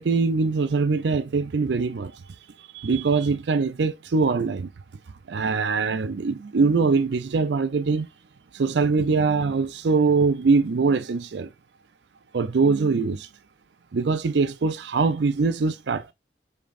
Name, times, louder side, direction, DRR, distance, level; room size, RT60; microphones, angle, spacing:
voice 1, 0.0-2.1 2.7-4.7 5.3-8.1 8.5-11.5 12.3-13.3 13.9-16.1, right 4 dB, 75° right, 0.5 m, -22 dB
5.2 x 3.7 x 2.5 m
head